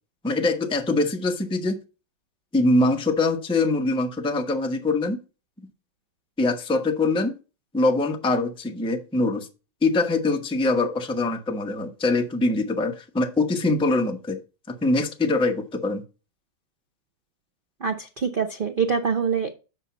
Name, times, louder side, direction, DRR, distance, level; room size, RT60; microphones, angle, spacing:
voice 1, 0.2-1.8 2.5-5.2 6.4-7.4 7.7-9.5 9.8-14.4 14.7-16.0, left 2 dB, 10° left, 0.3 m, -23 dB
voice 2, 17.8-19.5, right 6 dB, 75° right, 0.5 m, -25 dB
8.1 x 5.7 x 4.1 m
omnidirectional pair, 2.2 m